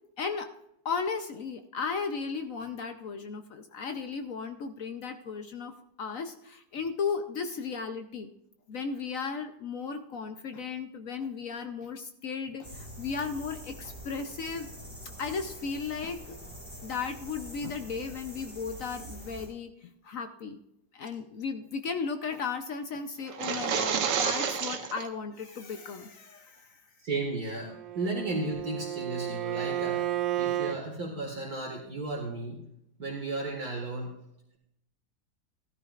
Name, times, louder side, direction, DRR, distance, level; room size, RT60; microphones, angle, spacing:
voice 1, 0.2-0.5 0.8-8.3 8.7-14.7 15.2-16.4 16.8-20.6 20.9-26.8, left 5 dB, 60° left, 7 dB, 0.9 m, -35 dB
sound 1, 12.6-19.5, equal, 5° left, 5.1 m, -45 dB
sound 2, 23.3-25.1, right 7 dB, 70° right, 1.6 m, -29 dB
voice 2, 27.0-30.1 30.4-32.6 33.0-34.1, right 2 dB, 55° right, -1 dB, 2.3 m, -34 dB
Bowed string instrument, 27.6-30.8, right 12 dB, 90° right, 1.3 m, -32 dB
15.0 x 13.5 x 2.4 m, 0.79 s
omnidirectional pair, 2.0 m